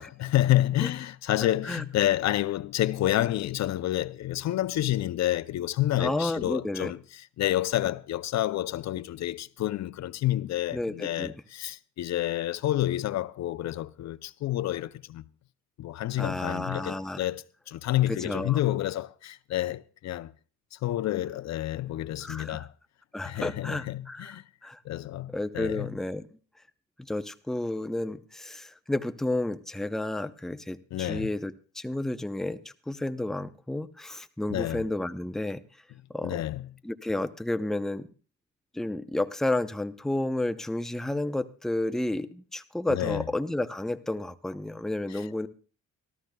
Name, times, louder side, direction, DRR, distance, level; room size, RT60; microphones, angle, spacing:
voice 1, 0.0-15.2 15.8-20.3 20.7-22.7 23.2-24.4 24.8-25.9 30.9-31.3 34.5-34.8 36.2-36.7 42.9-43.2 45.1-45.5, left 14 dB, 65° left, 0.5 m, -29 dB
voice 2, 6.0-6.9 10.7-11.3 16.2-17.2 18.1-18.6 22.2-22.7 23.1-24.8 25.3-26.3 27.0-35.6 36.1-36.4 36.8-38.1 38.7-45.5, left 1 dB, ahead, 0.6 m, -31 dB
25.5 x 13.0 x 2.3 m
cardioid pair, 90°, 30 cm